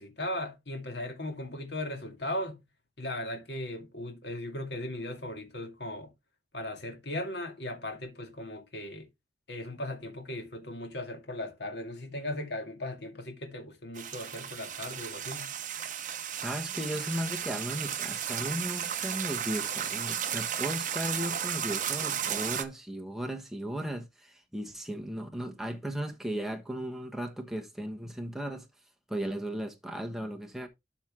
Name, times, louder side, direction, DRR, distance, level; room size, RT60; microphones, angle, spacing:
voice 1, 0.0-2.6 3.0-6.1 6.5-9.1 9.5-15.5, left 1 dB, 60° left, 2.3 m, -37 dB
sound 1, 14.0-22.6, right 9 dB, 45° right, 0.9 m, -34 dB
voice 2, 16.4-28.6 29.1-30.7, equal, ahead, 1.2 m, -36 dB
12.5 x 4.5 x 3.7 m
head